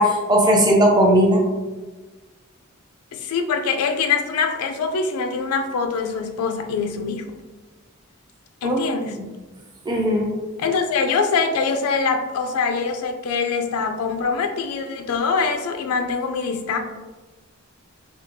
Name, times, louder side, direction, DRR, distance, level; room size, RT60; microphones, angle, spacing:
voice 1, 0.0-1.4 8.6-8.8 9.9-10.3, equal, 20° right, -1 dB, 0.6 m, -17 dB
voice 2, 3.1-7.3 8.6-9.2 10.6-16.8, left 5 dB, 85° left, 5 dB, 0.3 m, -23 dB
3.4 x 2.8 x 2.6 m, 1.2 s
head